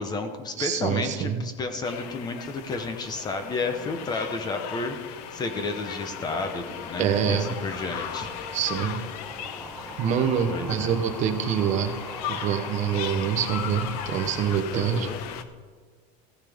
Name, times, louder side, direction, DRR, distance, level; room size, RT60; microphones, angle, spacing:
voice 1, 0.0-8.3 10.5-11.0 14.7-15.2, left 3 dB, 20° left, 7 dB, 0.7 m, -32 dB
voice 2, 0.6-1.4 7.0-7.6 8.5-9.1 10.0-12.0 12.3-15.1, right 8 dB, 35° right, 7 dB, 0.8 m, -26 dB
sound 1, 1.8-15.4, left 9 dB, 90° left, 0.8 m, -37 dB
sound 2, 6.0-14.6, right 1 dB, 5° left, 1.0 m, -42 dB
15.0 x 9.7 x 3.5 m, 1.5 s
cardioid pair, 170°, 20 cm